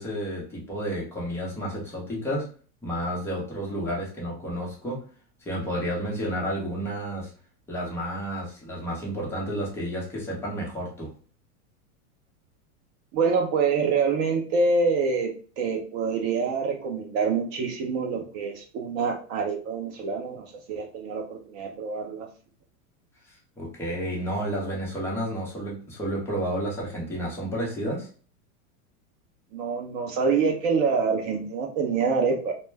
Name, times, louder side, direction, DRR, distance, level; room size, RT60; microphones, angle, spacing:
voice 1, 0.0-2.5 2.8-5.1 5.4-7.3 7.7-11.1 23.6-28.1, equal, 5° left, -4 dB, 0.7 m, -31 dB
voice 2, 13.1-15.3 15.6-22.3 29.5-32.5, right 5 dB, 35° right, 2 dB, 0.4 m, -26 dB
2.2 x 2.1 x 3.2 m, 0.40 s
supercardioid pair, 135°, 44 cm